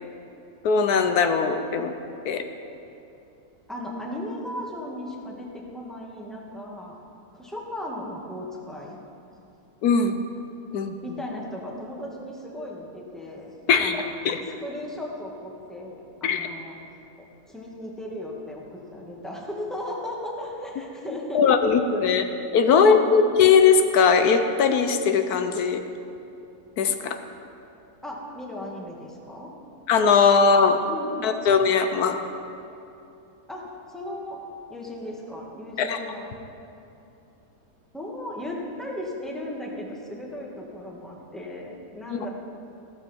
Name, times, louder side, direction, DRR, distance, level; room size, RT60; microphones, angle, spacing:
voice 1, 0.6-1.9 2.3-2.4 9.8-10.2 10.7-10.9 13.7-14.0 14.2-14.4 16.2-16.5 21.3-22.3 22.5-25.8 26.8-27.2 29.9-30.8 31.2-32.2 35.8-36.0 42.1-42.2, left 5 dB, 80° left, 7 dB, 1.3 m, -19 dB
voice 2, 3.7-7.0 7.3-9.0 11.0-13.5 13.8-14.2 14.6-16.8 17.2-21.4 22.7-23.1 28.0-29.5 30.9-31.3 33.5-34.4 34.7-36.4 37.9-42.3, left 1 dB, ahead, -3 dB, 1.9 m, -36 dB
15.5 x 13.5 x 4.5 m, 2.8 s
omnidirectional pair, 1.6 m